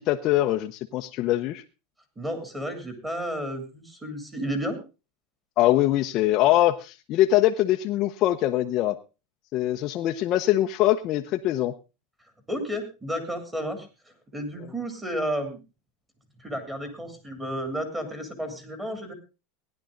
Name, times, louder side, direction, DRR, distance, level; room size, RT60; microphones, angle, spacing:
voice 1, 0.0-1.6 5.6-9.0 9.5-11.7, left 14 dB, 40° left, 3 dB, 0.7 m, -23 dB
voice 2, 2.2-4.8 12.5-13.9 14.3-15.6 16.4-19.1, equal, 10° right, 7 dB, 2.9 m, -32 dB
17.0 x 10.5 x 3.8 m, 0.31 s
supercardioid pair, 145°, 0 cm